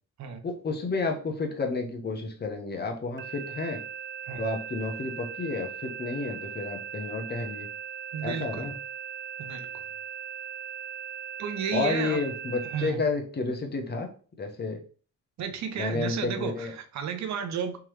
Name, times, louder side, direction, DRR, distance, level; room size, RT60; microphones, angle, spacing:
voice 1, 0.4-3.8 4.4-7.7 8.2-8.7 11.7-14.1 14.4-14.8 15.8-16.7, left 3 dB, 35° left, 1.0 m, -31 dB
sound 1, 3.2-12.9, right 8 dB, 40° right, 0.4 m, -39 dB
voice 2, 8.1-8.8 9.4-9.7 11.4-12.2 12.7-13.0 15.4-17.8, right 7 dB, 65° right, 0.8 m, -33 dB
3.6 x 3.0 x 3.1 m
cardioid pair, 90°, 30 cm